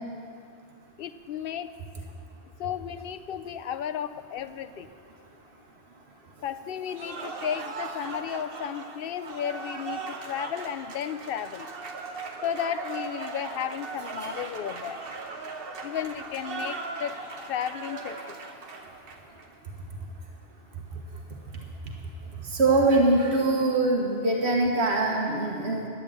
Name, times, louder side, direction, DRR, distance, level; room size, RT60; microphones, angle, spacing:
voice 1, 1.0-1.7 2.6-4.9 6.4-11.7 12.4-15.0 15.8-17.2 17.5-18.4, left 9 dB, 65° left, 11 dB, 0.7 m, -33 dB
Cheering / Applause, 6.9-19.5, right 4 dB, 65° right, 1.2 m, -38 dB
voice 2, 22.6-25.9, right 2 dB, 85° right, 0 dB, 1.4 m, -23 dB
11.5 x 9.2 x 7.5 m, 2.4 s
omnidirectional pair, 1.1 m